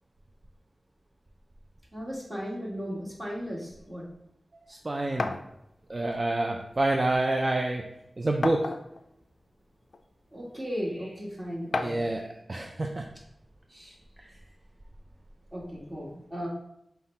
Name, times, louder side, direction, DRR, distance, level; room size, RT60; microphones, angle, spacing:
voice 1, 1.9-4.1 10.3-12.0 13.7-14.0 15.5-16.5, equal, 20° right, -5 dB, 1.7 m, -36 dB
voice 2, 4.5-5.3 5.9-7.8 8.2-8.7 11.7-13.0 14.2-14.3, right 2 dB, 40° right, 2 dB, 0.4 m, -28 dB
sound 1, 5.2-5.5 6.6-6.7 7.1-7.2 8.4-9.1 9.9-10.0 11.7-12.1, left 3 dB, 70° left, 0.3 m, -31 dB
5.6 x 2.2 x 4.2 m, 0.80 s
wide cardioid pair, 70°, 0 cm